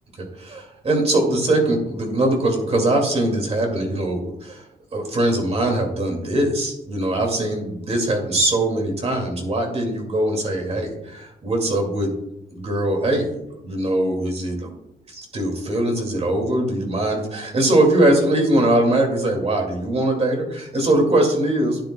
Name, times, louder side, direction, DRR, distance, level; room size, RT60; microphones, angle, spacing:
voice 1, 0.2-4.6 4.9-12.1 12.5-14.8 15.1-21.8, right 1 dB, 35° right, 2 dB, 2.2 m, -21 dB
12.0 x 9.1 x 2.2 m, 0.85 s
wide cardioid pair, 165°, 17 cm